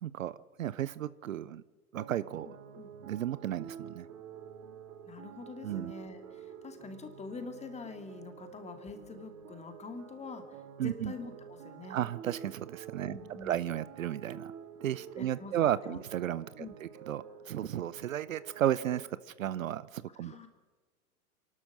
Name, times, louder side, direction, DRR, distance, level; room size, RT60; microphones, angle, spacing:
voice 1, 0.0-1.6 1.9-2.5 3.0-4.1 5.6-5.9 10.8-11.1 11.9-14.5 14.8-20.5, right 11 dB, 60° right, 18 dB, 0.8 m, -34 dB
sound 1, 1.9-19.1, right 7 dB, 35° right, 2.5 m, -49 dB
voice 2, 2.5-2.9 5.0-12.0 13.0-13.6 15.2-16.0 16.6-16.7 20.2-20.5, left 4 dB, 15° left, 7 dB, 2.3 m, -45 dB
28.0 x 12.5 x 7.6 m, 1.4 s
figure-of-eight pair, 105°, 44 cm